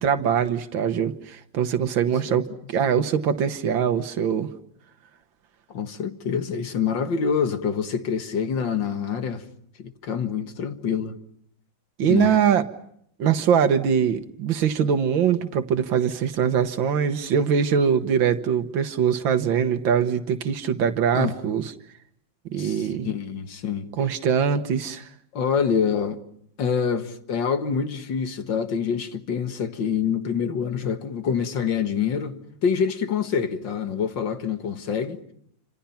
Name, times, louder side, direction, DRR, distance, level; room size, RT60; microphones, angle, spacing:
voice 1, 0.0-4.5 12.0-12.6 13.2-21.7 22.5-23.1 24.0-25.1, right 7 dB, 90° right, 2.0 m, -22 dB
voice 2, 5.7-9.4 9.8-11.1 12.1-12.4 21.1-21.4 22.6-23.9 25.3-26.2 26.6-35.2, left 6 dB, 75° left, 2.3 m, -26 dB
29.5 x 26.5 x 5.8 m
omnidirectional pair, 2.0 m